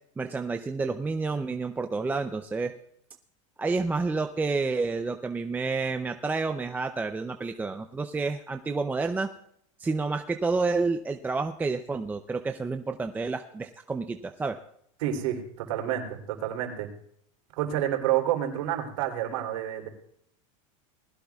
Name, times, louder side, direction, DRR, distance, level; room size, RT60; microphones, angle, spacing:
voice 1, 0.2-2.7 3.6-9.3 9.8-14.6, right 3 dB, 10° right, 6 dB, 0.5 m, -29 dB
voice 2, 15.0-16.9 17.6-19.9, right 11 dB, 75° right, 2 dB, 3.2 m, -29 dB
20.0 x 16.0 x 2.4 m, 0.69 s
supercardioid pair, 135°, 17 cm